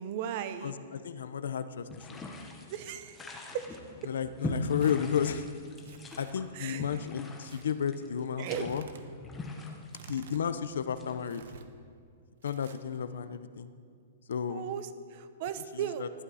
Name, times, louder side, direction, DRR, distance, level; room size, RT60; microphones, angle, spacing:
voice 1, 0.0-0.7 2.7-3.7 6.5-7.0 8.4-8.7 14.5-16.1, right 9 dB, 35° right, 11 dB, 0.8 m, -37 dB
voice 2, 0.6-2.2 4.1-5.5 6.2-8.8 10.1-11.4 12.4-13.7 14.3-14.7 15.7-16.1, left 8 dB, 85° left, 12 dB, 0.8 m, -32 dB
sound 1, 1.9-11.5, left 3 dB, 10° left, 1.0 m, -41 dB
Tearing, 4.5-4.9 5.8-6.3 7.4-7.6 8.4-9.0 9.9-10.5 11.3-11.7 12.4-13.0, right 7 dB, 65° right, 1.1 m, -52 dB
19.5 x 12.5 x 4.2 m, 2.3 s
hypercardioid pair, 175°, 0 cm